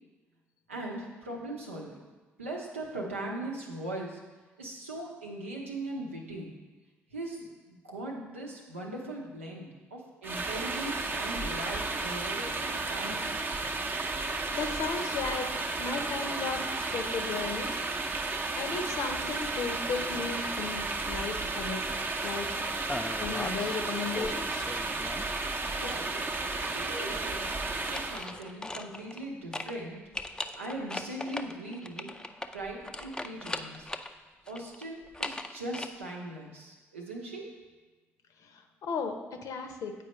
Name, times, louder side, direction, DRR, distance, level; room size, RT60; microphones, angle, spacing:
voice 1, 0.7-2.0 2.4-4.2 4.6-6.5 7.1-13.2 25.8-26.3 26.6-27.5 27.9-30.0 30.5-32.1 32.5-33.9 34.5-37.5, right 1 dB, 90° right, -2 dB, 0.8 m, -39 dB
sound 1, 10.2-28.3, right 3 dB, 30° right, 0.7 m, -33 dB
voice 2, 14.5-15.5 15.8-17.8 18.5-22.5 23.2-24.6 38.4-39.9, left 4 dB, 55° left, 6 dB, 0.7 m, -35 dB
sound 2, 22.9-23.8 24.1-25.4 27.6-29.3 29.5-29.7 30.1-34.1 34.5-35.9, left 2 dB, 10° left, 0.4 m, -39 dB
8.4 x 4.6 x 3.1 m, 1.3 s
figure-of-eight pair, 45°, 7 cm